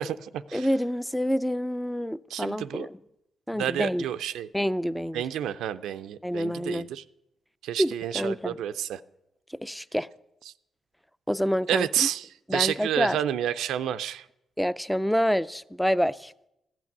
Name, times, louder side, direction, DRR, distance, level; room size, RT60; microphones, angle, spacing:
voice 1, 0.0-0.7 2.3-2.9 3.5-4.5 5.1-7.0 7.6-9.0 11.7-14.3, right 10 dB, 90° right, 0.4 m, -30 dB
voice 2, 0.5-3.0 3.5-4.1 4.5-5.2 6.2-6.8 7.8-8.6 9.6-10.1 11.3-12.1 12.5-13.2 14.6-16.3, equal, 5° left, 0.4 m, -27 dB
15.0 x 6.1 x 9.1 m
cardioid pair, 75°, 0 cm